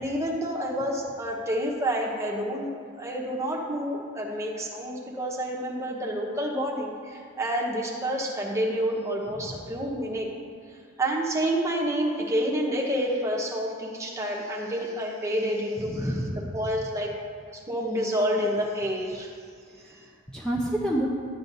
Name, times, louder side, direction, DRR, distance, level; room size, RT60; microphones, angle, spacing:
voice 1, 0.0-2.7 2.9-10.3 11.0-16.1 16.5-17.1 17.5-19.3, equal, 15° right, -2 dB, 1.1 m, -28 dB
voice 2, 9.3-9.7 15.8-16.5 19.7-21.1, right 1 dB, 5° left, -4 dB, 0.7 m, -30 dB
11.5 x 9.0 x 2.7 m, 2.2 s
head